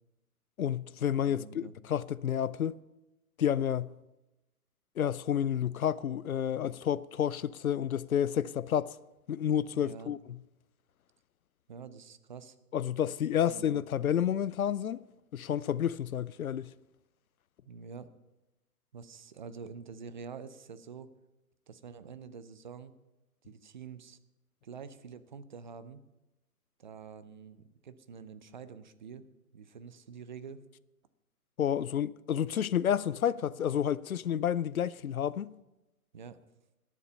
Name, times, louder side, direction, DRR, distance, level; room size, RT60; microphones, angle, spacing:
voice 1, 0.6-2.8 3.4-3.9 5.0-9.0 9.3-10.2 12.7-15.0 15.3-16.7 31.6-35.5, left 9 dB, 65° left, 0.6 m, -30 dB
voice 2, 1.2-1.8 9.7-10.1 11.7-12.6 13.4-13.8 17.6-18.1 18.9-21.1 21.7-23.0 23.5-24.2 24.6-26.0 26.8-29.2 29.5-30.6 36.1-36.4, right 6 dB, 30° right, 0.6 m, -47 dB
20.5 x 7.5 x 5.5 m
figure-of-eight pair, 135°, 47 cm